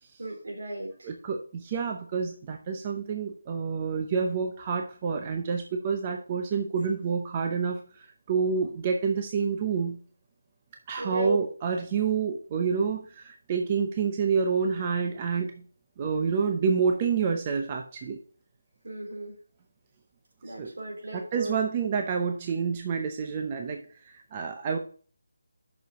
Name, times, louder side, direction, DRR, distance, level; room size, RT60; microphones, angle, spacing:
voice 1, 0.2-1.1 11.0-11.4 18.8-19.4 20.4-21.6, right 1 dB, 75° right, 0 dB, 3.7 m, -34 dB
voice 2, 1.0-10.0 10.9-15.6 16.0-18.2 20.5-20.7 21.1-24.8, right 5 dB, 20° right, 4 dB, 0.6 m, -28 dB
6.3 x 5.4 x 6.0 m, 0.43 s
figure-of-eight pair, 170°, 0 cm